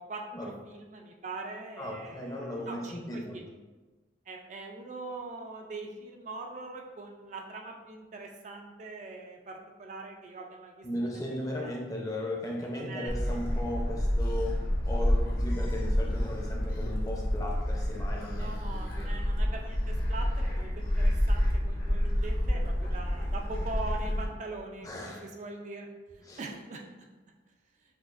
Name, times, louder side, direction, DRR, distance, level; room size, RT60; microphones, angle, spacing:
voice 1, 0.0-3.4 4.3-11.1 11.4-11.7 12.7-13.4 18.3-25.9 26.4-27.1, right 3 dB, 40° right, 2 dB, 0.4 m, -42 dB
voice 2, 1.8-3.4 10.8-19.1 24.8-25.2 26.3-26.4, left 1 dB, 20° left, -1 dB, 0.6 m, -36 dB
Gull seagull, 13.1-24.3, equal, 50° left, 0.7 m, -29 dB
6.2 x 2.5 x 2.4 m, 1.2 s
head